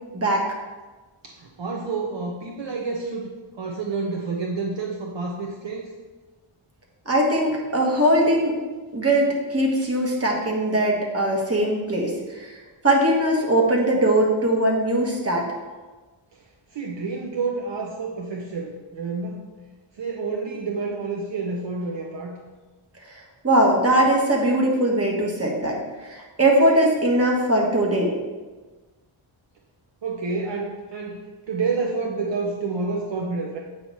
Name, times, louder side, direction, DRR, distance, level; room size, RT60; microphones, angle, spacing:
voice 1, 0.1-0.4 7.0-8.6 8.9-12.5 12.8-15.5 23.4-28.1, right 1 dB, 30° right, -1 dB, 1.5 m, -20 dB
voice 2, 1.2-3.3 3.5-5.9 16.7-19.4 19.9-22.4 30.0-33.6, right 4 dB, 60° right, 0 dB, 0.8 m, -29 dB
7.9 x 3.1 x 5.5 m, 1.3 s
wide cardioid pair, 90°, 50 cm